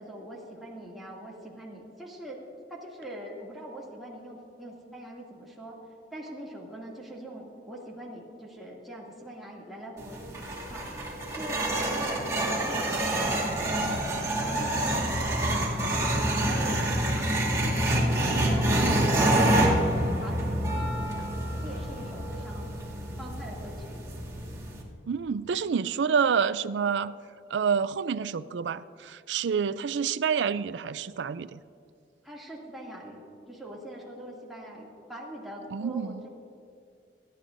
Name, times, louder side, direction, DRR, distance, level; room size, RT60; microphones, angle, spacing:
voice 1, 0.0-2.4 2.7-5.8 6.1-10.8 11.3-13.9 14.4-16.0 16.4-17.3 17.6-18.9 19.4-22.7 23.2-24.0 32.2-36.3, right 1 dB, ahead, -5 dB, 2.4 m, -42 dB
sound 1, 10.0-24.8, right 1 dB, 20° right, 2.4 m, -27 dB
voice 2, 25.1-27.1 27.5-31.6 35.7-36.2, right 6 dB, 80° right, 16 dB, 0.4 m, -28 dB
29.5 x 11.0 x 2.6 m, 2.3 s
head